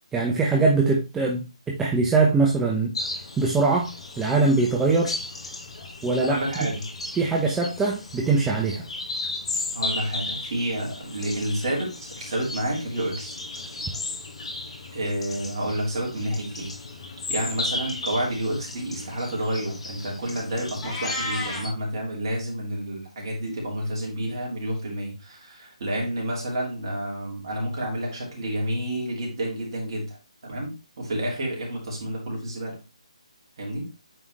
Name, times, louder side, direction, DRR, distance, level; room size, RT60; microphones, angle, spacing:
voice 1, 0.1-2.9 3.4-3.9 4.2-5.1 6.0-6.4 7.2-8.8, right 3 dB, 10° right, -1 dB, 0.7 m, -22 dB
sound 1, 2.9-21.7, left 2 dB, 60° left, 1.7 m, -35 dB
voice 2, 6.2-6.8 9.7-13.3 14.9-16.7 17.3-30.2 30.4-32.8 33.6-33.9, right 1 dB, 45° right, -1 dB, 2.9 m, -29 dB
Meow, 20.8-21.7, left 2 dB, 20° left, 2.0 m, -31 dB
8.7 x 3.7 x 3.1 m, 0.29 s
figure-of-eight pair, 145°, 4 cm